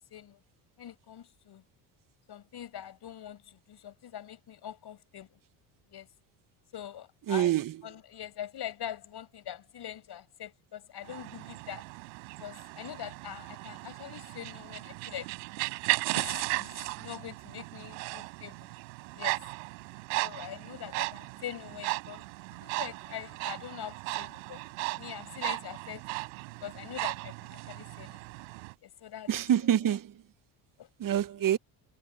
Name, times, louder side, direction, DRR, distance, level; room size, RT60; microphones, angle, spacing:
voice 1, 0.8-1.6 2.3-5.4 5.9-6.1 6.7-7.5 7.8-11.8 12.4-15.3 16.1-18.7 19.1-19.4 20.2-22.2 22.5-24.6 25.0-26.0 26.6-28.2 28.8-29.3 29.8-29.9 30.8-30.9 31.4-31.5, left 10 dB, 50° left, 6.0 m, -43 dB
voice 2, 7.3-7.7 29.3-30.1 31.0-31.6, right 11 dB, 40° right, 0.9 m, -26 dB
sound 1, 11.0-28.7, right 37 dB, 90° right, 3.7 m, -36 dB
supercardioid pair, 85°, 50 cm